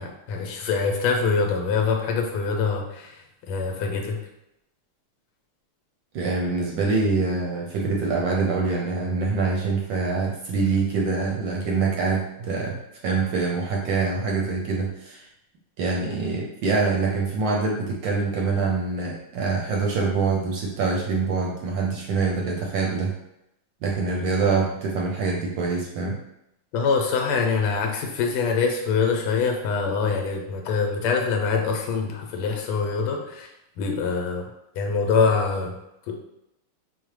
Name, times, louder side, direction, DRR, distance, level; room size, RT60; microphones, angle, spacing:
voice 1, 0.0-3.2 3.5-4.2 26.7-34.5 34.8-35.8 36.1-36.2, left 5 dB, 90° left, 2 dB, 1.6 m, -24 dB
voice 2, 6.1-15.3 15.8-23.1 23.8-26.2, right 4 dB, 75° right, -1 dB, 1.1 m, -25 dB
5.6 x 2.1 x 3.1 m, 0.84 s
omnidirectional pair, 2.4 m